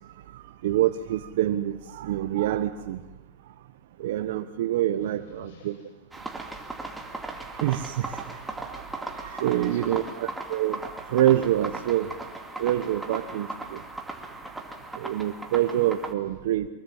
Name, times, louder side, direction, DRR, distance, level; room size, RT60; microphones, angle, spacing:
voice 1, 0.3-3.0 4.0-5.8 7.3-10.8 11.1-12.1 12.6-13.8 14.9-16.7, right 13 dB, 65° right, 1.2 m, -26 dB
voice 2, 5.0-6.0 9.5-10.2, left 4 dB, 65° left, 7.5 m, -53 dB
sound 1, 6.1-16.1, right 2 dB, 5° right, 2.4 m, -38 dB
24.0 x 23.0 x 7.4 m
supercardioid pair, 160°, 0 cm